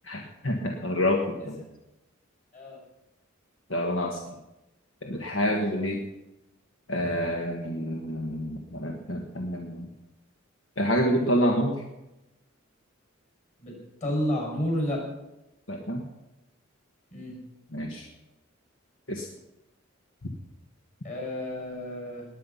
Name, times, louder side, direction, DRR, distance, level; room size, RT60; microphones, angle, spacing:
voice 1, 0.0-1.6 3.7-4.2 5.0-6.0 6.9-9.9 10.8-11.8 15.7-16.0 17.7-18.1 19.1-19.3, equal, 65° left, 1 dB, 1.5 m, -28 dB
voice 2, 14.0-15.0 17.1-17.4 21.0-22.3, equal, 35° left, -1 dB, 6.7 m, -30 dB
19.5 x 9.6 x 5.7 m, 0.97 s
head